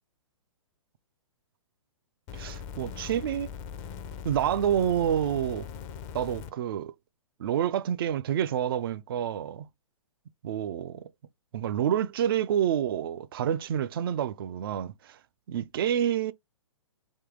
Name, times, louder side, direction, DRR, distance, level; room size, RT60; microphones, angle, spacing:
sound 1, 2.3-6.5 7.5-7.6, left 7 dB, 25° left, 0.5 m, -40 dB
voice 1, 2.3-3.5 4.2-5.7 6.1-6.9 7.4-9.7 10.4-11.1 11.5-15.2 15.5-16.3, right 10 dB, 45° right, 0.4 m, -28 dB
3.6 x 2.7 x 3.6 m
figure-of-eight pair, 120°, 17 cm